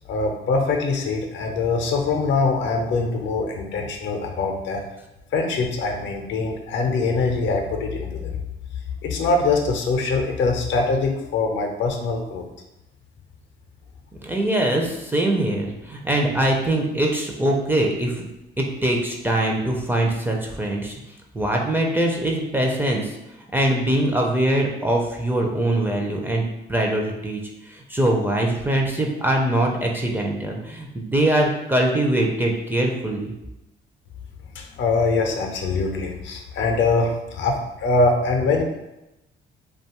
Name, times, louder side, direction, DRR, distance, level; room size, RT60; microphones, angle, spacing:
voice 1, 0.1-4.8 5.3-8.4 9.0-12.4 34.5-38.6, left 3 dB, 70° left, 2 dB, 0.5 m, -23 dB
voice 2, 14.2-18.3 18.6-21.0 21.3-23.1 23.5-26.4 26.7-33.3, right 1 dB, 10° right, 0 dB, 0.4 m, -22 dB
2.5 x 2.3 x 2.9 m, 0.93 s
cardioid pair, 90°, 20 cm